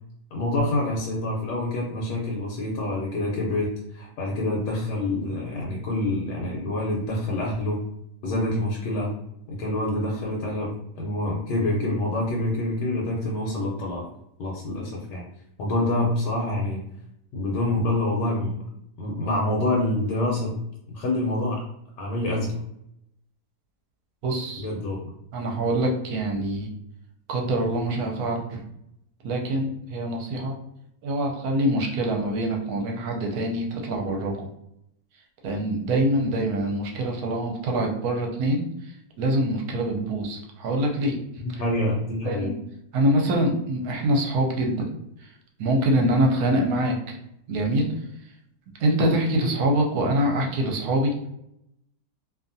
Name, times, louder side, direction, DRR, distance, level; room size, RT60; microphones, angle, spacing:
voice 1, 0.3-7.8 8.2-9.1 9.5-14.1 14.4-15.2 15.6-16.8 17.3-18.6 19.0-20.6 20.9-21.6 22.0-22.6 24.6-25.0 41.6-42.5, left 1 dB, 80° left, -2 dB, 1.2 m, -26 dB
voice 2, 24.2-24.7 25.3-26.7 27.3-28.6 29.2-30.6 31.0-34.5 35.4-41.1 41.5-41.6 42.2-42.5 42.9-44.9 45.2-45.3 45.6-47.2 47.5-47.9 48.8-51.3, right 1 dB, 70° right, 1 dB, 1.0 m, -25 dB
2.7 x 2.4 x 2.6 m, 0.79 s
omnidirectional pair, 1.8 m